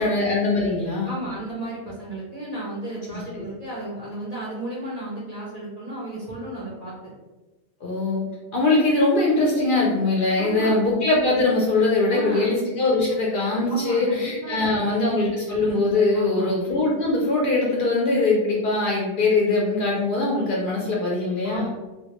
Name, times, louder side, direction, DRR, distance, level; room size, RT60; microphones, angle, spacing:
voice 1, 0.0-1.1 3.1-3.2 7.8-8.2 8.5-21.7, left 2 dB, 60° left, -4 dB, 0.6 m, -22 dB
voice 2, 1.0-7.1 10.3-10.8 12.1-12.5 13.1-13.2 13.7-15.3 16.1-16.5 21.4-21.7, right 1 dB, 45° right, -6 dB, 0.5 m, -33 dB
2.2 x 2.2 x 2.9 m, 1.1 s
omnidirectional pair, 1.2 m